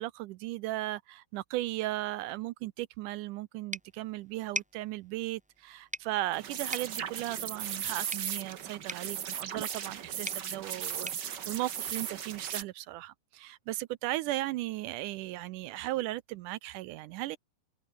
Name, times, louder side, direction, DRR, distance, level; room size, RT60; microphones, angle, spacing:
voice 1, 0.0-17.4, right 17 dB, 80° right, 1.9 m, -36 dB
sound 1, 3.7-12.4, equal, ahead, 3.2 m, -45 dB
sound 2, 6.3-12.6, right 8 dB, 55° right, 1.2 m, -37 dB
open air
omnidirectional pair, 4.0 m